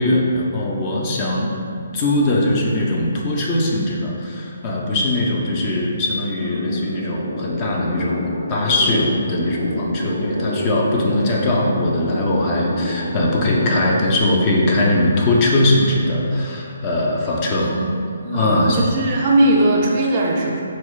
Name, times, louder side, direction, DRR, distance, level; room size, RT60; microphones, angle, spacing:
voice 1, 0.0-1.5 1.9-17.7 18.3-18.8, left 1 dB, 30° left, -3 dB, 0.4 m, -20 dB
sound 1, 6.1-14.0, left 1 dB, 70° left, 1.1 m, -27 dB
voice 2, 17.6-17.9 18.2-20.6, right 1 dB, 35° right, -2 dB, 0.4 m, -19 dB
4.1 x 2.0 x 2.3 m, 2.5 s
figure-of-eight pair, 140°, 0 cm